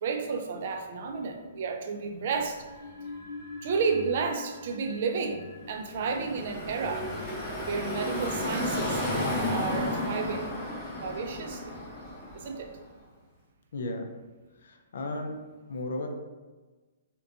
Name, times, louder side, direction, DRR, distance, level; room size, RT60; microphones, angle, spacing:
voice 1, 0.0-2.7 3.6-9.2 9.5-10.5 11.0-11.8 12.3-12.7, right 5 dB, 50° right, 5 dB, 0.3 m, -32 dB
sound 1, 2.4-9.3, left 2 dB, 50° left, 0.8 m, -46 dB
Car passing by / Traffic noise roadway noise, 5.8-12.8, left 1 dB, 15° left, 0.7 m, -32 dB
voice 2, 13.7-14.0 14.6-15.3 15.7-16.1, left 2 dB, 70° left, 4 dB, 0.4 m, -34 dB
2.6 x 2.1 x 2.4 m, 1.2 s
hypercardioid pair, 155°, 0 cm